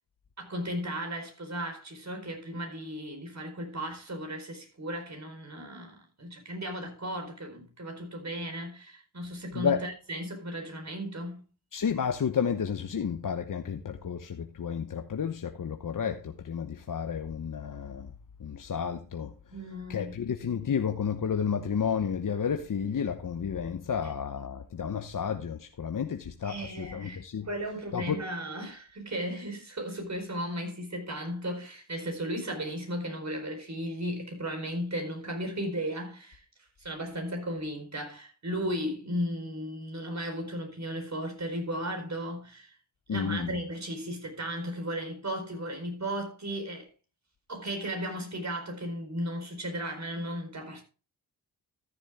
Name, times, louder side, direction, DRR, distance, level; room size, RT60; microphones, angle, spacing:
voice 1, 0.4-11.4 19.5-20.1 26.4-36.4 36.8-42.8 43.1-46.9 47.5-50.8, equal, 45° right, 4.5 m, -35 dB
voice 2, 9.5-9.8 11.7-18.1 18.4-19.3 19.9-27.5 27.9-28.2 43.1-43.5, left 7 dB, 55° left, 1.0 m, -31 dB
14.0 x 7.2 x 3.6 m
cardioid pair, 55°, 39 cm